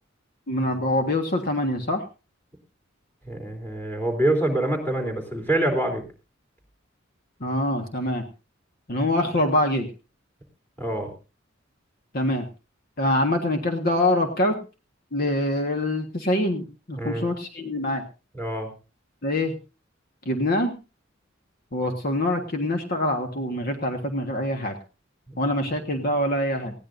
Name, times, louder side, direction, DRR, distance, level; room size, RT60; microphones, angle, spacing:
voice 1, 0.5-2.1 7.4-8.2 8.9-9.9 12.1-12.5 13.0-14.6 15.1-18.0 19.2-19.5 20.2-20.7 21.7-24.8 25.4-26.7, left 1 dB, 50° left, 4 dB, 1.5 m, -24 dB
voice 2, 3.3-6.0 10.8-11.1 16.9-17.3 18.4-18.7 25.3-25.4, right 1 dB, 10° left, 3 dB, 3.4 m, -25 dB
19.5 x 15.5 x 2.6 m, 0.32 s
head